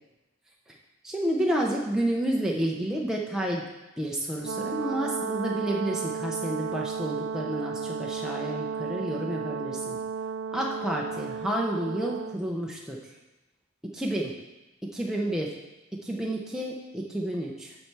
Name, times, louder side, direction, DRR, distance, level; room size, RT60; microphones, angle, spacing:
voice 1, 1.0-3.6 4.0-10.0 10.5-13.0 13.8-14.3 14.8-15.5 15.9-17.8, right 1 dB, 5° right, -2 dB, 0.6 m, -30 dB
Brass instrument, 4.4-12.4, right 6 dB, 65° right, 0.3 m, -33 dB
7.5 x 4.5 x 6.7 m, 1.0 s
head